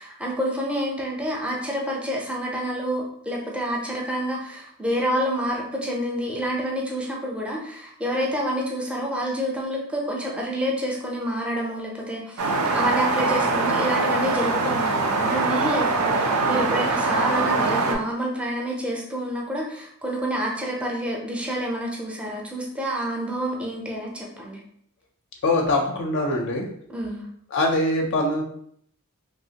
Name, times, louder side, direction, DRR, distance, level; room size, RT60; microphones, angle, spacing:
voice 1, 0.0-24.6 26.9-27.3, equal, 5° right, -2 dB, 0.5 m, -28 dB
sound 1, 12.4-18.0, right 3 dB, 75° right, 0.5 m, -23 dB
voice 2, 25.4-26.7 27.5-28.4, left 2 dB, 55° left, 1 dB, 0.4 m, -23 dB
3.1 x 2.4 x 2.7 m, 0.66 s
head